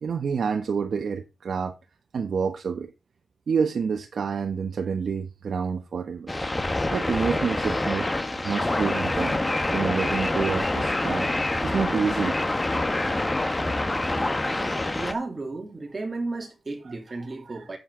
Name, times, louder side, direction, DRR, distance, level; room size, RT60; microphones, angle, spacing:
voice 1, 0.0-1.7 2.1-2.9 3.5-6.3 6.9-8.1 8.4-9.4 9.7-11.3 11.6-12.4 17.4-17.7, right 6 dB, 75° right, 1.1 m, -28 dB
sound 1, 6.3-15.1, left 2 dB, 20° left, 1.2 m, -26 dB
voice 2, 14.9-17.8, right 3 dB, 35° right, 3.1 m, -33 dB
10.0 x 7.8 x 3.8 m
wide cardioid pair, 115°, 0 cm